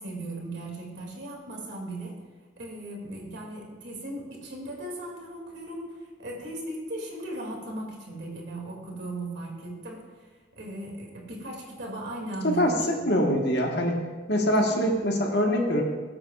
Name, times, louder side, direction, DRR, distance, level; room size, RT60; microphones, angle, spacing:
voice 1, 0.0-2.1 2.6-13.1 14.7-15.0, right 1 dB, 65° right, -1 dB, 2.5 m, -37 dB
voice 2, 13.0-14.0 14.3-15.8, equal, 55° left, 1 dB, 1.5 m, -24 dB
19.0 x 8.6 x 2.5 m, 1.4 s
head